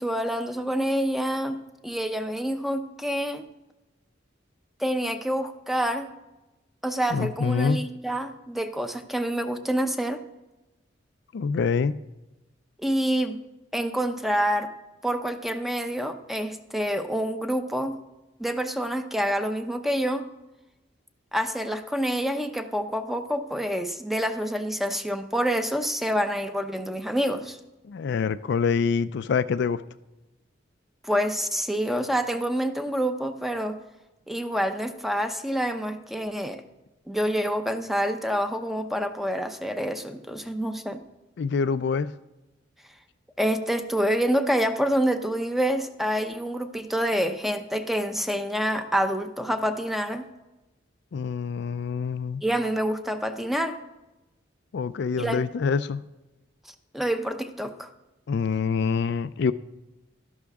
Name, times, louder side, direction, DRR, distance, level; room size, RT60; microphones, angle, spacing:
voice 1, 0.0-3.5 4.8-6.1 6.8-10.2 12.8-13.4 13.7-14.7 15.0-18.0 18.4-20.3 21.3-27.6 31.0-33.8 34.3-36.6 37.1-41.0 43.4-50.3 52.4-53.8 55.2-55.5 56.9-57.9, equal, ahead, 8 dB, 0.6 m, -27 dB
voice 2, 7.1-7.8 11.3-12.0 27.9-29.8 41.4-42.1 51.1-52.4 54.7-56.0 58.3-59.5, left 5 dB, 65° left, 13 dB, 0.4 m, -25 dB
12.5 x 11.0 x 3.6 m, 1.0 s
head